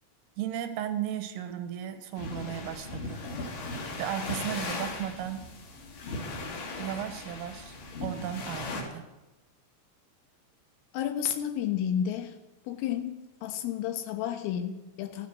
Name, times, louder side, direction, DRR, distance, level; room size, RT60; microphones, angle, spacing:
voice 1, 0.4-3.2 4.0-5.5 6.8-9.1, right 10 dB, 90° right, 9 dB, 3.8 m, -35 dB
sound 1, 2.2-8.8, left 2 dB, 70° left, 6.0 m, -37 dB
voice 2, 10.9-12.4 12.7-15.3, left 9 dB, 85° left, 7 dB, 4.0 m, -31 dB
15.0 x 15.0 x 6.2 m, 1.0 s
omnidirectional pair, 5.7 m